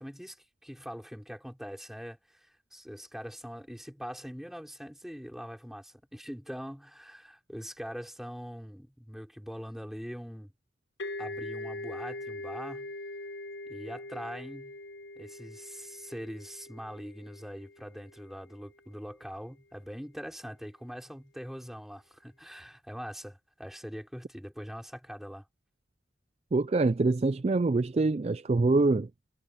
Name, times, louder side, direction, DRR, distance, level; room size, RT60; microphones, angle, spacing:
voice 1, 0.0-10.5 11.2-12.9 13.7-14.8 15.2-25.5, equal, ahead, 5.7 m, -42 dB
sound 1, 11.0-18.5, left 2 dB, 85° left, 6.2 m, -42 dB
voice 2, 26.5-29.1, right 3 dB, 35° right, 0.3 m, -25 dB
head